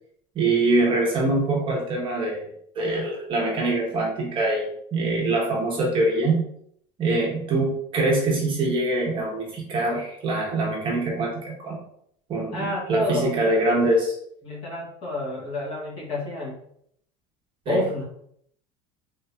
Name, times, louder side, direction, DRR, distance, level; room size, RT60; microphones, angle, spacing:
voice 1, 0.3-2.5 2.7-6.4 7.0-11.8 12.3-14.1 17.7-17.8, right 2 dB, 35° right, -2 dB, 1.0 m, -24 dB
voice 2, 12.5-13.3 14.4-16.6 17.7-18.0, left 1 dB, 35° left, -4 dB, 1.4 m, -29 dB
3.6 x 2.7 x 2.2 m, 0.69 s
cardioid pair, 140°, 15 cm